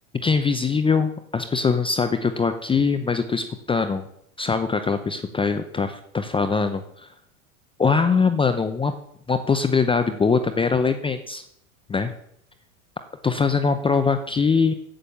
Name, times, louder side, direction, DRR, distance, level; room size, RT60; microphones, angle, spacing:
voice 1, 0.2-4.0 4.4-7.1 7.8-8.9 9.3-11.4 11.9-12.1 13.2-14.7, left 5 dB, 10° left, 9 dB, 0.7 m, -22 dB
8.9 x 8.8 x 6.8 m, 0.71 s
hypercardioid pair, 100°, 42 cm